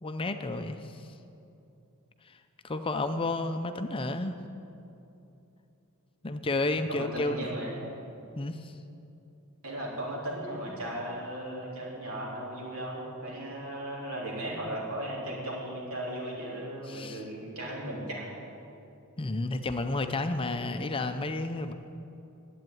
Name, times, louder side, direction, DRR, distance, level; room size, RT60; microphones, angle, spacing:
voice 1, 0.0-1.1 2.2-2.4 2.6-4.3 6.2-7.5 8.4-8.7 16.9-17.2 19.2-21.7, left 2 dB, 25° left, 8 dB, 0.5 m, -31 dB
voice 2, 6.9-7.9 9.6-18.3 20.4-20.5, right 1 dB, 75° right, -4 dB, 3.6 m, -36 dB
11.0 x 8.7 x 9.2 m, 2.7 s
head